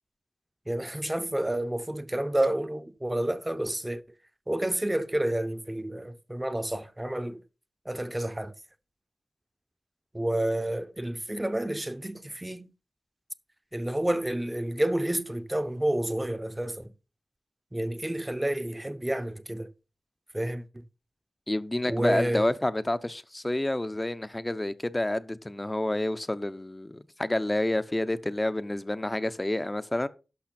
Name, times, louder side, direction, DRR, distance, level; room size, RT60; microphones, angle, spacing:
voice 1, 0.7-4.0 4.5-7.4 7.8-8.5 10.1-12.7 13.7-16.9 17.7-19.7 20.3-20.8 21.9-22.5, right 1 dB, 15° right, 0.9 m, -30 dB
voice 2, 21.5-30.1, left 1 dB, 20° left, 0.7 m, -29 dB
12.0 x 5.7 x 4.3 m
wide cardioid pair, 75°, 0 cm